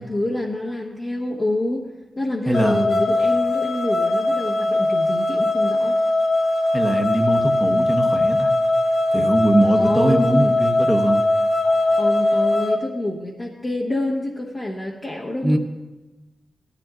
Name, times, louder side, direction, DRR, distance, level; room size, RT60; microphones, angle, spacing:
voice 1, 0.0-6.0 9.7-10.6 11.6-15.6, left 1 dB, 30° left, -3 dB, 1.1 m, -27 dB
sound 1, 2.5-12.8, left 2 dB, 55° left, 1.0 m, -20 dB
voice 2, 2.5-2.9 6.7-8.5 9.1-11.2 15.4-15.6, right 1 dB, 10° right, 2 dB, 1.0 m, -21 dB
17.5 x 13.0 x 2.5 m, 1.1 s
wide cardioid pair, 140°, 0 cm